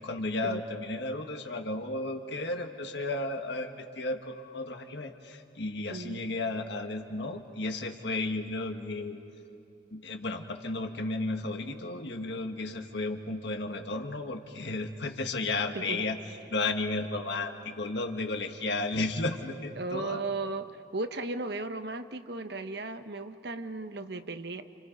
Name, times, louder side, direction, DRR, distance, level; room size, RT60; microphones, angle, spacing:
voice 1, 0.0-9.2 9.9-16.2 16.5-20.2, left 2 dB, 65° left, 5 dB, 1.6 m, -33 dB
voice 2, 5.9-6.2 15.7-16.0 19.8-24.6, right 3 dB, 55° right, 9 dB, 0.9 m, -36 dB
29.5 x 28.5 x 5.3 m, 2.8 s
head